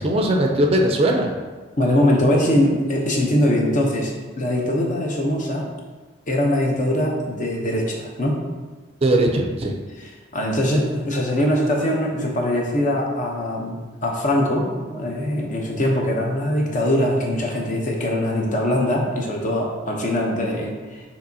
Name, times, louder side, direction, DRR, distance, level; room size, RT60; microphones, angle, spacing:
voice 1, 0.0-1.3 9.0-9.8, right 1 dB, 30° right, 2 dB, 0.4 m, -19 dB
voice 2, 1.8-5.7 6.3-8.4 10.0-21.0, left 1 dB, 40° left, -1 dB, 0.7 m, -22 dB
6.6 x 2.9 x 2.7 m, 1.3 s
head